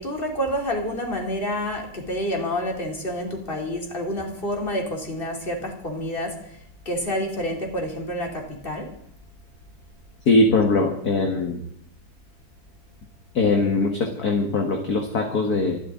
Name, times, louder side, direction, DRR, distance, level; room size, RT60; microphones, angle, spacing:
voice 1, 0.0-8.9, equal, 25° left, 1 dB, 3.2 m, -28 dB
voice 2, 10.3-11.6 13.3-15.8, left 3 dB, 45° left, 3 dB, 1.9 m, -21 dB
26.0 x 12.0 x 3.8 m, 0.65 s
omnidirectional pair, 2.4 m